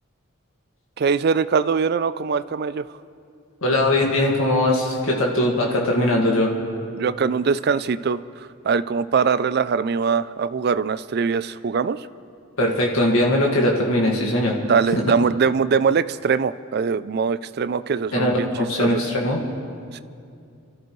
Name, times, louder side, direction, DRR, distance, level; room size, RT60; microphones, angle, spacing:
voice 1, 1.0-2.8 6.9-12.0 14.6-18.5 18.8-18.9 19.9-20.0, right 5 dB, 50° right, 15 dB, 0.3 m, -22 dB
voice 2, 3.6-6.5 12.6-14.6 14.9-15.1 18.1-19.4, left 1 dB, 75° left, -2 dB, 1.9 m, -20 dB
29.5 x 13.5 x 3.2 m, 2.4 s
head